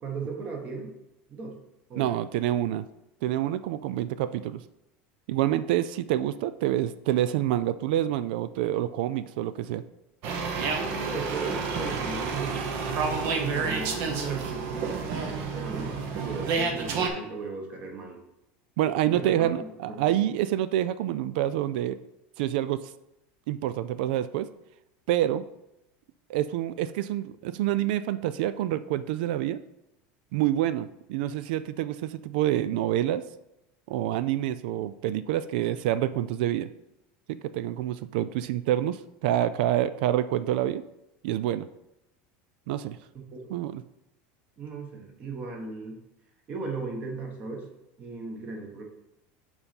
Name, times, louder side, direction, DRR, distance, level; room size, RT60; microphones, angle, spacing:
voice 1, 0.0-0.9 1.3-1.6 1.9-2.1 10.7-13.0 13.4-18.2 19.1-19.5 19.9-20.2 43.1-43.5 44.6-46.0 46.5-47.7 48.0-48.8, right 4 dB, 30° right, 2 dB, 1.4 m, -37 dB
voice 2, 2.0-2.9 3.2-4.6 5.3-9.8 18.8-22.0 22.4-22.9 23.5-24.5 25.1-25.4 26.3-29.6 30.3-33.2 33.9-36.7 37.3-40.8 41.2-41.7 42.7-43.0 43.5-43.8, right 12 dB, 70° right, 14 dB, 0.3 m, -27 dB
sound 1, 10.2-17.1, right 5 dB, 45° right, 1.0 m, -30 dB
6.9 x 4.2 x 5.3 m, 0.88 s
supercardioid pair, 165°, 5 cm